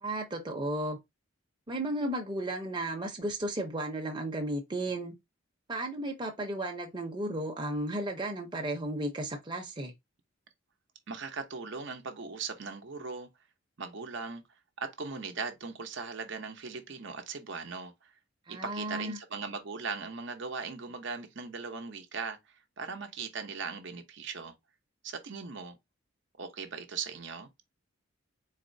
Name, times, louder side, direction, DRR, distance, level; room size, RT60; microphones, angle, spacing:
voice 1, 0.0-1.0 1.7-5.1 5.7-9.9 18.5-19.2, right 1 dB, 25° right, 0.7 m, -34 dB
voice 2, 11.1-13.3 13.8-14.4 14.8-18.1 18.5-24.5 25.0-25.8 26.4-27.5, right 5 dB, 60° right, 0.8 m, -39 dB
4.1 x 3.0 x 2.7 m
head